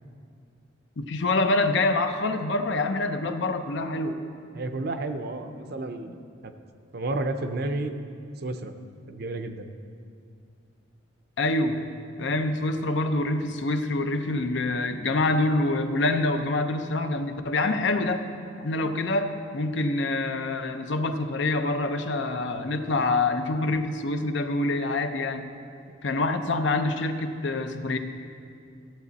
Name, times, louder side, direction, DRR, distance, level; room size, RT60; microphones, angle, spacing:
voice 1, 1.0-4.2 11.4-11.8 12.2-18.2 18.6-25.5 26.0-28.0, left 2 dB, 65° left, 7 dB, 0.6 m, -26 dB
voice 2, 4.5-6.2 6.4-6.5 6.9-7.9 8.4-8.7 9.1-9.7 25.9-26.0, right 2 dB, 55° right, 7 dB, 0.6 m, -31 dB
14.0 x 8.2 x 4.1 m, 2.4 s
head